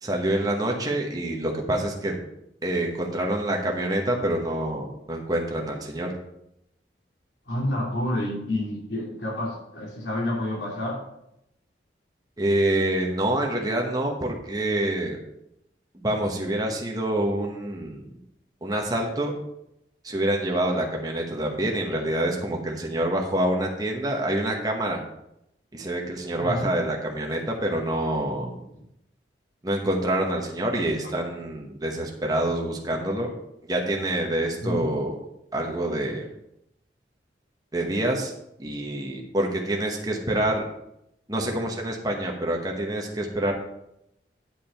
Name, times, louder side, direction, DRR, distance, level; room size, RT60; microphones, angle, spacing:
voice 1, 0.0-2.2 2.6-6.1 12.4-15.2 15.9-18.1 18.6-19.3 20.0-25.0 25.7-28.6 29.6-33.3 33.7-35.2 35.5-36.3 37.7-38.3 38.6-40.6 41.3-43.5, right 1 dB, 20° right, 1 dB, 1.1 m, -26 dB
voice 2, 7.4-11.0 26.4-26.8 28.7-28.9 34.6-35.0, left 1 dB, 85° left, -4 dB, 3.0 m, -29 dB
8.8 x 4.9 x 5.7 m, 0.81 s
head